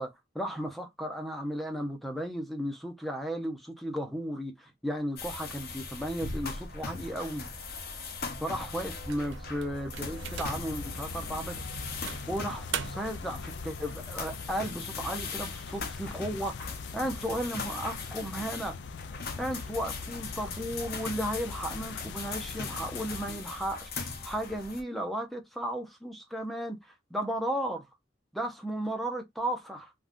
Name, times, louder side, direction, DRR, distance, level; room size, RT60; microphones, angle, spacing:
voice 1, 0.0-7.5 8.4-11.5 12.3-18.8 19.4-27.8 28.3-29.9, equal, ahead, 0.6 m, -35 dB
sound 1, 5.2-24.8, left 4 dB, 50° left, 0.7 m, -40 dB
sound 2, 9.1-10.8 11.3-11.5 12.1-13.3, right 9 dB, 75° right, 0.4 m, -40 dB
sound 3, 10.0-23.4, left 5 dB, 70° left, 0.3 m, -42 dB
3.5 x 2.3 x 2.4 m
head